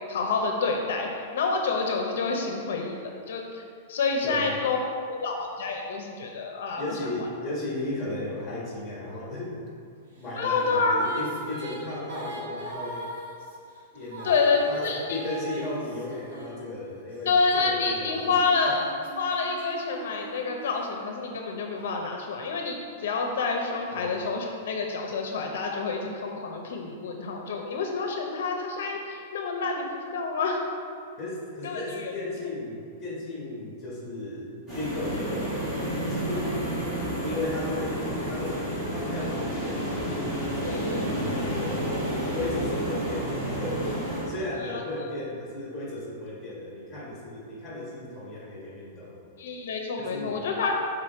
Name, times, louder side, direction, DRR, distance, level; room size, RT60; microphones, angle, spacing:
voice 1, 0.1-3.6 3.9-4.8 5.1-7.0 10.4-11.0 14.2-15.2 17.3-18.9 19.2-30.6 31.6-32.1 40.6-41.2 44.6-44.8 49.4-50.7, left 4 dB, 65° left, 2 dB, 0.7 m, -28 dB
voice 2, 4.2-4.6 6.8-9.6 10.1-13.1 13.9-14.4 14.7-18.7 23.9-24.2 31.2-36.5 37.0-40.1 40.6-41.9 42.3-43.9 44.3-49.2 50.0-50.5, left 2 dB, 10° left, -5 dB, 1.3 m, -35 dB
Female singing, 10.2-17.1 17.8-21.6, right 1 dB, 65° right, 1.3 m, -41 dB
sound 1, 34.7-44.2, right 1 dB, 10° right, 1.5 m, -30 dB
6.6 x 3.6 x 4.4 m, 2.3 s
supercardioid pair, 180°, 0 cm